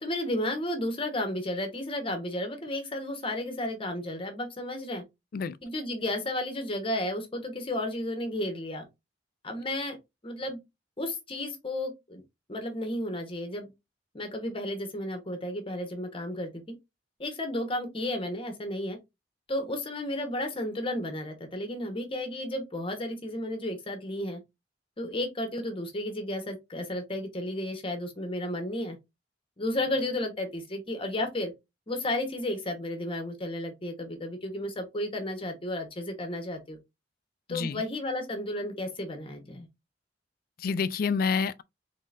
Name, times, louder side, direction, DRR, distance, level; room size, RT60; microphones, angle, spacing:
voice 1, 0.0-5.0 5.6-8.8 9.4-10.0 10.2-10.6 11.0-12.2 12.5-13.7 14.1-16.6 17.2-19.0 19.5-24.4 25.0-29.0 29.6-31.5 31.9-36.8 37.5-39.7, left 1 dB, 30° left, 1.1 m, -33 dB
voice 2, 37.5-37.8 40.6-41.6, left 5 dB, 55° left, 0.4 m, -28 dB
3.8 x 3.7 x 2.5 m
head